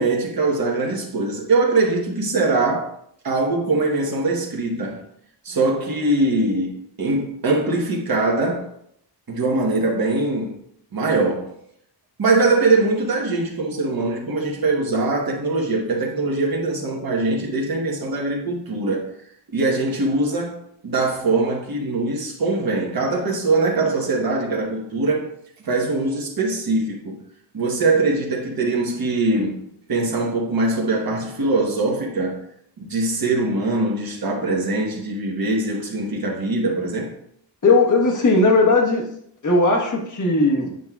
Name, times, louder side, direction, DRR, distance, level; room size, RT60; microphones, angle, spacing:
voice 1, 0.0-3.0 3.2-5.0 5.4-8.7 9.3-10.6 10.9-11.5 12.2-19.1 19.5-25.3 25.6-27.2 27.5-29.6 29.9-32.4 32.8-37.1, right 2 dB, 55° right, 1.2 m, -22 dB
voice 2, 37.6-39.0 39.4-40.7, left 2 dB, 45° left, 1.3 m, -17 dB
7.7 x 5.2 x 2.3 m
wide cardioid pair, 160°, 43 cm